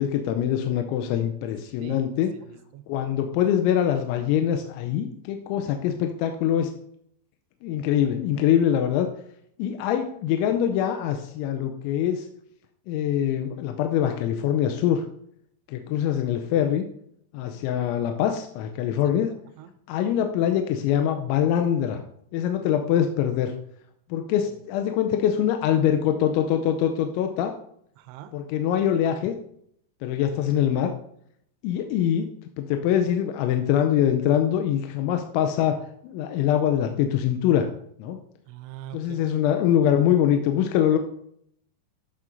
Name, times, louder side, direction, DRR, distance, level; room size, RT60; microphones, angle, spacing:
voice 1, 0.0-2.3 2.9-6.7 7.6-9.1 9.6-12.3 12.9-15.1 15.7-16.9 17.3-19.3 19.9-22.0 22.3-23.5 24.1-27.5 28.3-29.3 30.0-30.9 31.6-32.3 32.6-35.8 36.0-37.7 38.0-38.2 38.9-41.0, left 10 dB, 85° left, 5 dB, 3.0 m, -23 dB
voice 2, 1.8-2.9 19.6-19.7 24.5-24.6 28.0-28.3 38.5-39.3, right 12 dB, 85° right, 9 dB, 2.6 m, -43 dB
13.5 x 7.4 x 2.6 m, 0.70 s
omnidirectional pair, 5.3 m